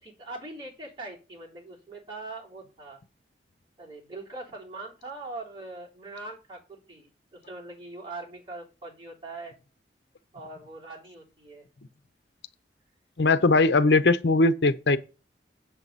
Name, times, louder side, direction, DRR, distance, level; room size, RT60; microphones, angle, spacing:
voice 1, 0.0-3.0 3.8-9.5 10.3-11.6, right 2 dB, 25° right, 3.5 m, -42 dB
voice 2, 13.2-15.0, left 3 dB, 80° left, 0.7 m, -20 dB
7.9 x 7.5 x 4.0 m
head